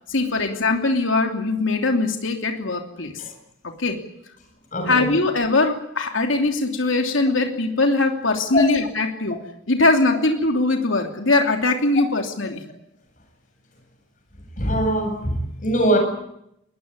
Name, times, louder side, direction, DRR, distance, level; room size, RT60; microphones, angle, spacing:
voice 1, 0.1-3.2 3.6-4.0 4.9-9.4 9.7-12.6, left 2 dB, 85° left, 4 dB, 3.0 m, -21 dB
voice 2, 4.7-5.0 8.5-8.6 14.6-16.0, equal, 40° left, 4 dB, 7.6 m, -22 dB
21.5 x 20.0 x 9.7 m, 0.78 s
head